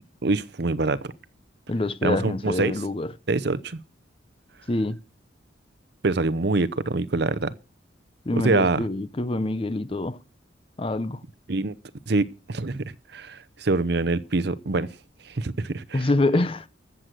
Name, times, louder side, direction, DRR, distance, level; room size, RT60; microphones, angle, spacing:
voice 1, 0.2-1.1 2.0-2.7 3.3-3.8 6.0-7.5 8.3-8.8 11.5-11.7 12.1-12.8 13.1-14.9 15.3-16.0, right 3 dB, 60° right, 0.7 m, -25 dB
voice 2, 1.7-3.1 4.7-5.0 8.3-10.2 10.8-11.2 15.9-16.7, left 2 dB, 30° left, 0.6 m, -25 dB
14.0 x 7.9 x 6.7 m
head